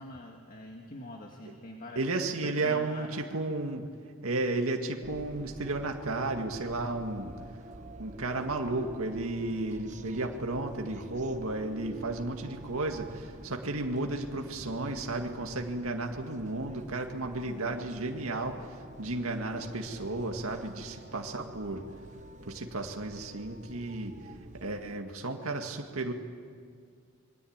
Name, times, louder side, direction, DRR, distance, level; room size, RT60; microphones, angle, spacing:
voice 1, 0.0-2.1 2.4-3.1, left 1 dB, 40° left, 1 dB, 1.9 m, -44 dB
voice 2, 2.0-3.8 4.2-7.3 8.0-18.6 19.0-21.8 22.5-24.1 24.6-26.1, right 2 dB, 80° right, 3 dB, 2.0 m, -33 dB
sound 1, 5.0-25.0, right 1 dB, 35° right, 1.1 m, -48 dB
27.0 x 22.5 x 8.8 m, 2.1 s
head